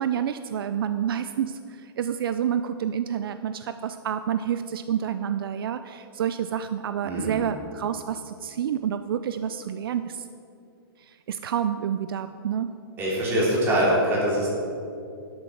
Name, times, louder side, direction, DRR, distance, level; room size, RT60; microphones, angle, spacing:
voice 1, 0.0-10.2 11.0-12.8, right 9 dB, 65° right, 10 dB, 0.5 m, -29 dB
voice 2, 7.0-7.3 13.0-14.5, equal, 15° right, -6 dB, 3.3 m, -23 dB
12.0 x 7.8 x 5.9 m, 2.5 s
hypercardioid pair, 165°, 13 cm